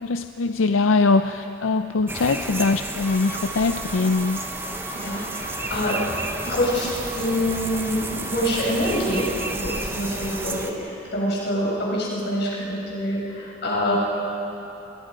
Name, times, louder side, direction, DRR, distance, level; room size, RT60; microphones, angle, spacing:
voice 1, 0.0-4.4, left 3 dB, 90° left, 9 dB, 0.5 m, -22 dB
sound 1, 2.1-10.7, right 2 dB, 10° right, 1.1 m, -31 dB
Bowed string instrument, 3.0-9.5, equal, 20° left, 3.5 m, -40 dB
voice 2, 4.9-6.0 6.4-14.0, equal, 60° left, -4 dB, 6.0 m, -26 dB
27.5 x 20.0 x 5.3 m, 3.0 s
head